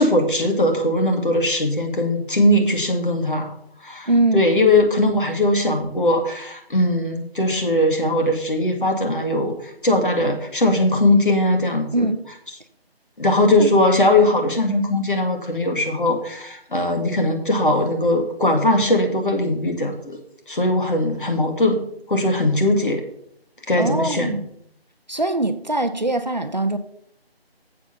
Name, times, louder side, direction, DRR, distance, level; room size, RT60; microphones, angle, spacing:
voice 1, 0.0-3.5 3.8-12.1 13.2-20.2 20.5-21.8 22.1-23.0 23.7-24.4, left 1 dB, 55° left, 2.1 m, -20 dB
voice 2, 4.1-4.4 11.9-12.2 13.6-13.7 23.8-24.4 25.1-26.8, right 2 dB, 45° right, 0.6 m, -22 dB
7.7 x 7.0 x 5.7 m
figure-of-eight pair, 170°, 31 cm